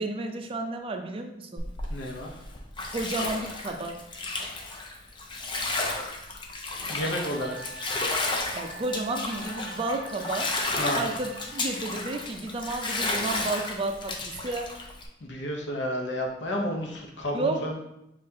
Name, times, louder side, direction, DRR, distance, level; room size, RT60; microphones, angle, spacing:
voice 1, 0.0-1.7 2.9-4.0 8.5-14.1 14.4-14.7 17.3-17.6, right 2 dB, 30° right, 4 dB, 0.4 m, -32 dB
Bathtub (filling or washing), 1.6-15.1, left 2 dB, 25° left, 0.5 m, -33 dB
voice 2, 1.9-2.3 6.9-7.6 10.8-11.0 15.2-17.8, equal, 75° left, 1 dB, 0.8 m, -31 dB
Wind instrument woodwind instrument, 7.3-11.8, right 3 dB, 60° right, 0.7 m, -45 dB
6.6 x 2.5 x 2.7 m, 0.88 s
head